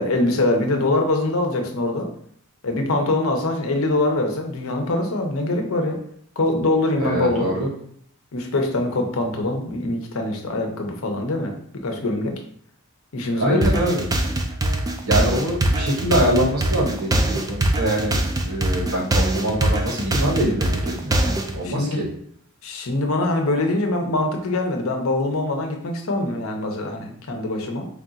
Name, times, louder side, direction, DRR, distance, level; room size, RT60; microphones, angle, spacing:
voice 1, 0.0-2.1 2.6-6.0 6.4-7.5 8.3-11.5 11.8-12.3 13.1-13.8 21.1-22.0 22.6-27.9, left 2 dB, 65° left, 3 dB, 0.7 m, -23 dB
voice 2, 7.0-7.7 13.3-14.1 15.0-18.2 18.4-21.1 21.5-22.0, right 1 dB, 80° right, -1 dB, 1.2 m, -24 dB
sound 1, 13.6-21.6, right 1 dB, 15° right, 0.3 m, -22 dB
3.4 x 2.4 x 3.9 m, 0.64 s
head